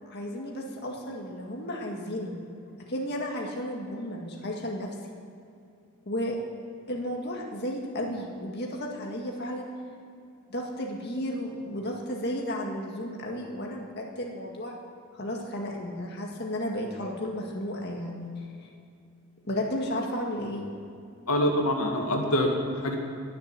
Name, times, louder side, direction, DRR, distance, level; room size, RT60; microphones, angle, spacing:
voice 1, 0.1-2.4 2.8-4.9 6.1-6.4 6.9-9.7 10.5-14.7 15.1-18.3 18.6-18.7 19.4-20.6, left 1 dB, 50° left, -1 dB, 1.9 m, -33 dB
voice 2, 21.3-23.0, left 1 dB, 85° left, 1 dB, 2.2 m, -25 dB
20.5 x 7.8 x 7.5 m, 2.5 s
head